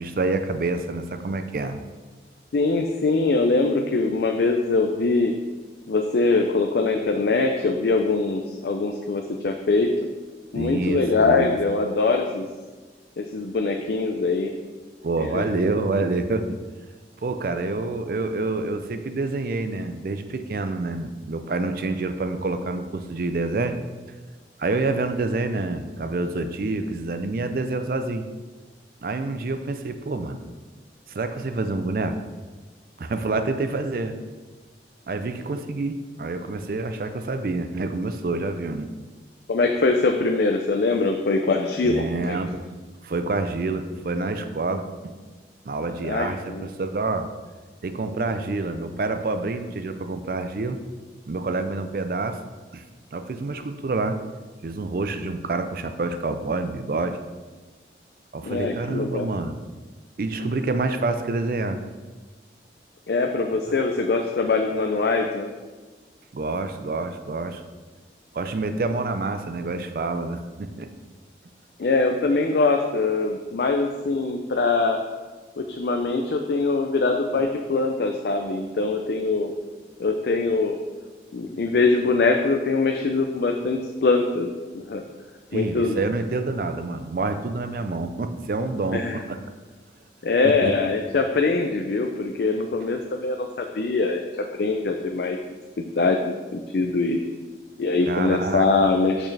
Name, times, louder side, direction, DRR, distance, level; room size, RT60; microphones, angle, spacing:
voice 1, 0.0-1.8 10.5-11.5 15.0-16.5 17.2-23.8 24.6-28.2 29.0-30.4 31.1-32.2 33.0-34.2 35.1-38.9 41.8-42.6 43.0-45.1 45.7-47.3 47.8-50.8 51.3-52.4 52.7-52.8 53.1-54.2 54.6-57.2 58.3-59.6 60.2-61.8 66.3-67.6 68.3-70.9 77.4-77.5 85.5-89.4 90.4-90.7 98.1-98.6, right 3 dB, 55° right, 8 dB, 0.4 m, -27 dB
voice 2, 2.5-5.3 5.9-9.9 10.5-12.5 13.2-14.5 15.2-15.4 39.5-42.4 46.0-46.7 58.4-59.3 63.1-65.5 71.8-75.0 75.6-79.5 80.0-80.8 81.3-84.5 84.7-85.0 85.5-86.0 88.9-89.2 90.2-94.2 94.6-95.4 95.8-96.2 96.5-97.2 97.8-99.3, left 3 dB, 65° left, 4 dB, 0.4 m, -23 dB
6.3 x 6.2 x 3.3 m, 1.3 s
head